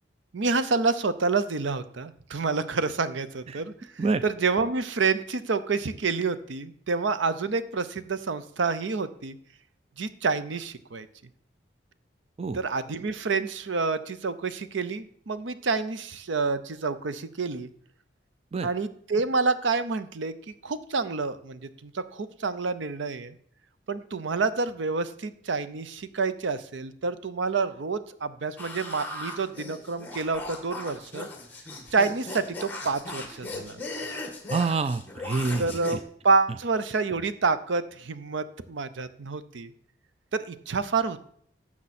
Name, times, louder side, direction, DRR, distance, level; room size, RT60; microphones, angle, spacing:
voice 1, 0.3-9.4 10.0-11.1 12.5-17.7 18.6-23.4 23.9-31.3 31.9-33.8 35.6-39.7 40.3-41.3, right 4 dB, 80° right, 13 dB, 0.6 m, -28 dB
sound 1, 28.6-36.0, left 2 dB, 10° left, 1.4 m, -38 dB
voice 2, 34.5-36.0, right 4 dB, 30° right, 12 dB, 0.3 m, -27 dB
12.0 x 7.4 x 4.2 m, 0.64 s
head